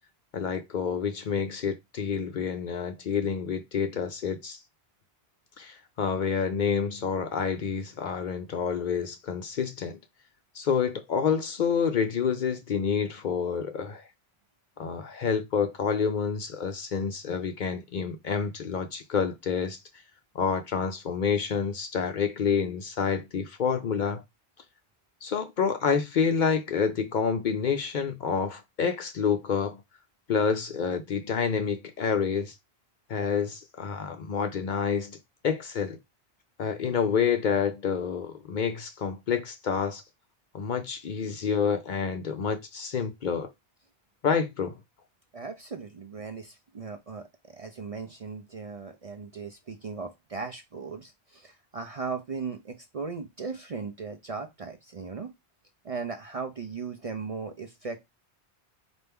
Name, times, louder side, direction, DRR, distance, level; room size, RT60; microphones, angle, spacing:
voice 1, 0.3-4.6 5.6-10.0 10.5-14.0 14.8-19.8 20.3-24.2 25.2-29.8 30.3-32.5 33.1-35.2 35.4-36.0 36.6-40.0 40.5-43.5 44.2-44.7, left 6 dB, 55° left, 0.6 m, -28 dB
voice 2, 45.3-55.3 55.8-58.1, right 5 dB, 45° right, 0.5 m, -37 dB
4.4 x 2.6 x 3.4 m
omnidirectional pair, 1.1 m